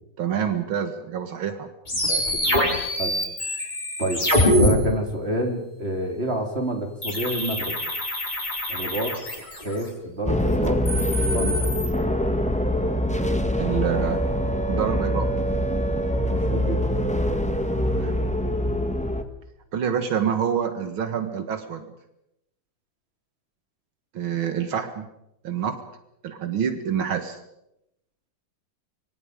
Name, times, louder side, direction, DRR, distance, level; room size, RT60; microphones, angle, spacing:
voice 1, 0.2-1.7 13.6-14.2 14.7-15.3 17.9-18.3 19.7-21.9 24.1-25.1 25.4-25.8 26.2-27.4, right 8 dB, 75° right, 8 dB, 2.3 m, -27 dB
sound 1, 1.9-4.7 7.0-9.8 10.7-11.9, left 1 dB, 20° left, 4.5 m, -24 dB
voice 2, 2.1-2.7 3.0-3.2 4.0-7.8 8.7-9.2 9.6-10.8 11.3-11.7 16.3-17.1, right 1 dB, 30° right, 3 dB, 3.7 m, -29 dB
sound 2, 10.2-19.2, equal, 5° left, 1.4 m, -24 dB
25.5 x 24.5 x 5.2 m, 0.83 s
omnidirectional pair, 2.2 m